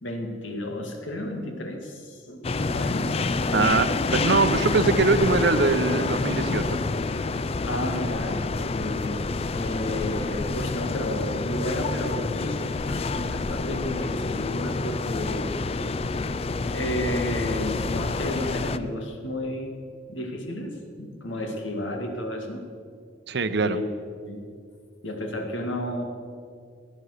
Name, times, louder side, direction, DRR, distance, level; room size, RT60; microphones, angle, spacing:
voice 1, 0.0-3.2 7.7-8.4 8.7-9.2 9.5-15.5 16.7-19.8 20.1-22.6 23.6-23.9 24.2-24.4 25.0-26.0, left 1 dB, 85° left, 3 dB, 2.2 m, -32 dB
sound 1, 2.4-18.8, left 3 dB, 30° left, 0.4 m, -28 dB
voice 2, 3.5-6.8 23.3-23.8, right 3 dB, 60° right, 12 dB, 0.8 m, -22 dB
16.5 x 9.8 x 6.6 m, 2.2 s
head